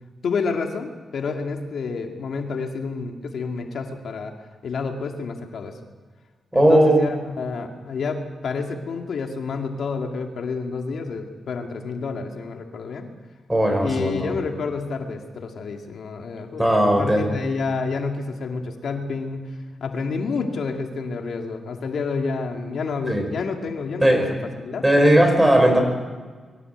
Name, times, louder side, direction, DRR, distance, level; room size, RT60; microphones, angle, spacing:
voice 1, 0.2-4.3 4.6-5.8 6.5-13.1 13.8-16.7 17.0-19.5 19.8-24.2 24.6-24.8 25.1-25.2, left 4 dB, 75° left, 3 dB, 2.2 m, -29 dB
voice 2, 6.5-7.0 13.5-14.2 16.6-17.3 23.1-23.2 24.0-24.3 24.8-25.8, right 1 dB, 10° right, 4 dB, 5.5 m, -17 dB
23.5 x 14.5 x 8.0 m, 1.5 s
cardioid pair, 85°, 0 cm